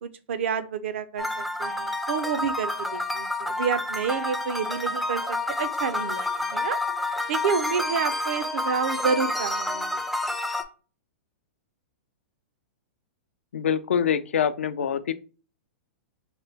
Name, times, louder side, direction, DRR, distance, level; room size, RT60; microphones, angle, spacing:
voice 1, 0.0-6.8 7.3-10.0, right 6 dB, 70° right, 0.5 m, -29 dB
sound 1, 1.2-10.6, left 2 dB, ahead, 0.3 m, -29 dB
voice 2, 13.5-15.1, left 8 dB, 85° left, 0.4 m, -25 dB
3.0 x 2.2 x 3.2 m
hypercardioid pair, 130°, 7 cm